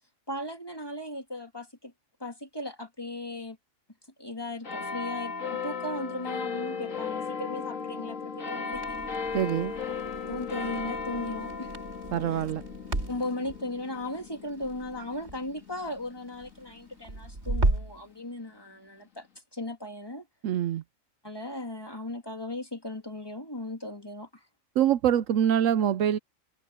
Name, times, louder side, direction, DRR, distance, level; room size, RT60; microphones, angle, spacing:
voice 1, 0.3-1.9 2.2-3.6 4.2-9.1 10.3-11.8 12.3-12.4 13.1-20.3 21.2-24.5, left 1 dB, 15° left, 2.3 m, -37 dB
sound 1, 4.6-17.5 18.2-18.3, left 5 dB, 70° left, 2.5 m, -36 dB
Crackle, 8.7-18.0, right 2 dB, 50° right, 3.8 m, -35 dB
voice 2, 9.3-9.7 12.1-12.6 20.4-20.8 24.8-26.2, right 10 dB, 75° right, 1.0 m, -24 dB
omnidirectional pair, 1.4 m